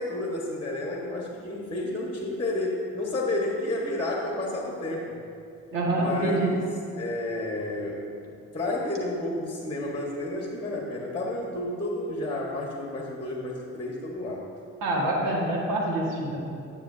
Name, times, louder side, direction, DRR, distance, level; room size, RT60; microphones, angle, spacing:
voice 1, 0.0-5.2 5.9-6.6 7.0-14.4, left 2 dB, 15° left, -2 dB, 1.4 m, -31 dB
voice 2, 5.7-6.5 14.8-16.4, right 2 dB, 65° right, -3 dB, 1.9 m, -26 dB
10.0 x 8.3 x 2.7 m, 2.5 s
hypercardioid pair, 50°, 36 cm